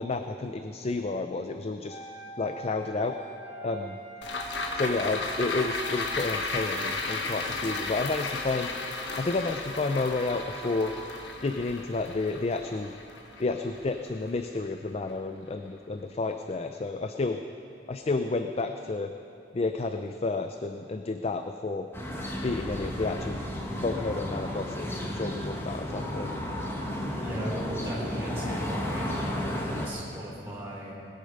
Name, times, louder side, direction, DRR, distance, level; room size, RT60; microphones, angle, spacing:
voice 1, 0.0-2.0 2.4-3.1 3.6-4.0 4.7-8.7 9.2-10.9 11.4-12.9 13.4-17.4 17.9-19.1 19.5-21.9 22.4-23.4 23.8-26.3, left 3 dB, 35° left, 7 dB, 0.4 m, -31 dB
sound 1, 1.8-5.8 6.6-11.1, right 4 dB, 50° left, 3.2 m, -45 dB
sound 2, 4.2-14.7 15.1-15.2, left 3 dB, 80° left, 1.3 m, -34 dB
sound 3, 21.9-29.9, left 1 dB, 15° left, 1.4 m, -33 dB
voice 2, 27.2-30.9, equal, 15° right, -4 dB, 4.3 m, -38 dB
20.0 x 8.6 x 5.4 m, 2.6 s
head